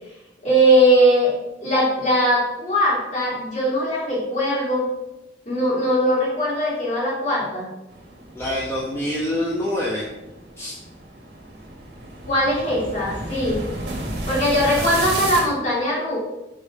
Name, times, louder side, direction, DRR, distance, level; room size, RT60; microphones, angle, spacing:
voice 1, 0.4-1.3 1.6-4.9 5.5-7.7 12.3-13.6 14.3-16.2, equal, 40° left, -6 dB, 2.9 m, -20 dB
sound 1, 7.9-15.5, right 2 dB, 60° right, 1.7 m, -33 dB
voice 2, 8.3-10.1 10.6-10.8 14.7-14.8, left 1 dB, 15° left, -7 dB, 1.1 m, -26 dB
6.2 x 5.5 x 4.8 m, 0.94 s
head